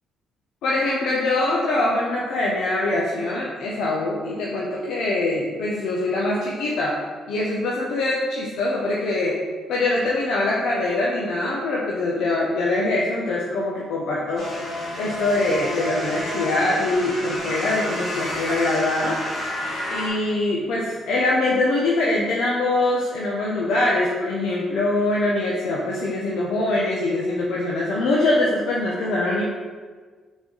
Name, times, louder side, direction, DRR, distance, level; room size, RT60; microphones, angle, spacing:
voice 1, 0.6-6.9 7.3-9.3 9.7-14.5 15.0-19.2 19.9-29.4, left 2 dB, 80° left, -4 dB, 0.5 m, -23 dB
sound 1, 14.4-20.1, left 1 dB, 65° left, 1.3 m, -30 dB
3.9 x 3.0 x 3.8 m, 1.5 s
cardioid pair, 90°, 0 cm